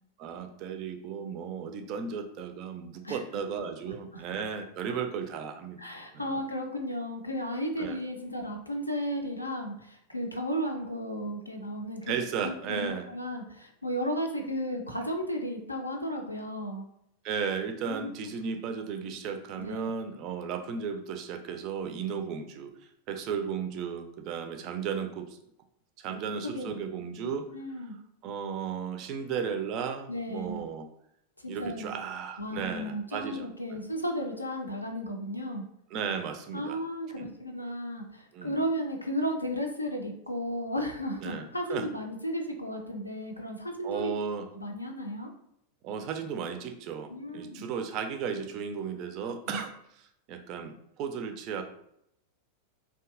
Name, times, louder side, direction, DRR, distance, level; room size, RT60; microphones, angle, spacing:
voice 1, 0.2-5.8 6.1-6.2 7.8-8.0 12.1-13.0 17.2-22.7 23.1-25.4 26.0-27.4 28.2-30.8 31.5-33.8 35.9-36.8 37.2-37.3 38.3-38.5 41.2-41.9 43.8-44.5 45.8-49.7 50.3-51.6, right 6 dB, 40° right, 6 dB, 0.3 m, -35 dB
voice 2, 3.0-3.4 3.9-4.2 5.8-16.9 17.9-18.3 19.6-19.9 26.4-26.8 27.2-28.0 30.1-30.6 31.4-31.9 32.4-35.7 36.5-44.1 44.5-45.3 47.1-47.7 49.5-49.6, equal, 85° left, 3 dB, 0.4 m, -34 dB
2.6 x 2.3 x 2.3 m, 0.75 s
figure-of-eight pair, 90°, 0 cm